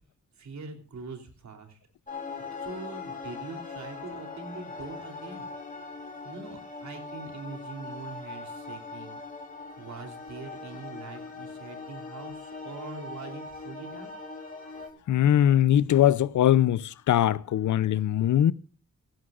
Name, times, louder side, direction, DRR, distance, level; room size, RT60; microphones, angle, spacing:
voice 1, 0.4-1.8 2.6-5.5 6.2-9.2 9.8-14.1, right 4 dB, 75° right, 3.2 m, -43 dB
sound 1, 2.1-14.9, left 4 dB, 25° left, 3.2 m, -41 dB
voice 2, 15.1-18.5, left 11 dB, 85° left, 0.6 m, -21 dB
16.0 x 16.0 x 2.4 m
wide cardioid pair, 95°, 29 cm